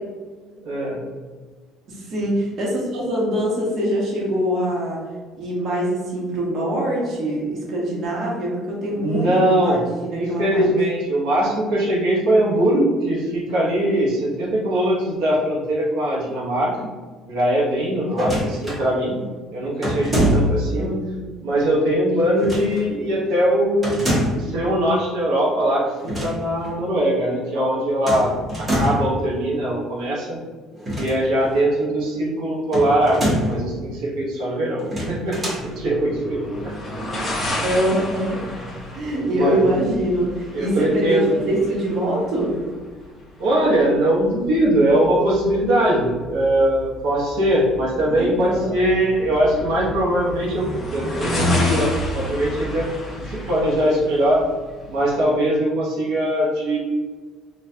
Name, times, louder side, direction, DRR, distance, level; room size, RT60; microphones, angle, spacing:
voice 1, 0.6-1.0 8.9-9.8 10.1-16.7 17.3-19.2 19.5-21.0 21.4-30.4 30.9-35.4 35.6-36.4 39.2-39.7 40.5-41.3 43.4-54.4 54.9-56.8, right 1 dB, 80° right, -5 dB, 1.0 m, -21 dB
voice 2, 1.9-5.0 5.4-10.7 20.7-21.2 37.6-38.5 38.9-42.5 48.1-48.9, right 1 dB, 50° right, -4 dB, 1.1 m, -24 dB
sound 1, 18.1-18.8 19.8-20.7 22.4-22.8 23.8-24.5 25.9-26.4 26.6-26.8 28.1-29.2 30.8-31.6 32.7-33.6 34.8-35.7, equal, 25° right, 1.3 m, -24 dB
sound 2, 35.5-55.2, left 1 dB, 20° left, 1.0 m, -30 dB
4.1 x 2.5 x 2.7 m, 1.4 s
cardioid pair, 120°, 0 cm